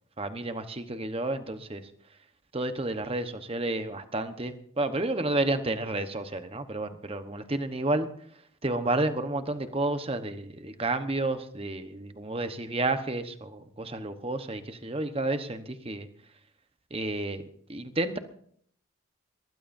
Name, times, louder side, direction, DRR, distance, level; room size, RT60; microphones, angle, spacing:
voice 1, 0.2-1.9 2.5-8.1 8.6-16.1 16.9-17.4 17.7-18.2, right 2 dB, 25° right, 8 dB, 1.1 m, -31 dB
23.5 x 20.0 x 2.7 m, 0.62 s
head